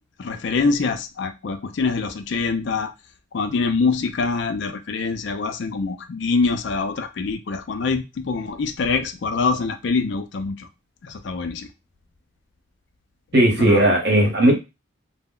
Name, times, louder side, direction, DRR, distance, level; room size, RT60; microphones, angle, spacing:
voice 1, 0.2-2.9 3.3-10.7 11.0-11.7 13.6-13.8, left 4 dB, 65° left, 0.4 m, -24 dB
voice 2, 13.3-14.6, right 1 dB, 55° right, 0.9 m, -16 dB
2.1 x 2.1 x 3.6 m
head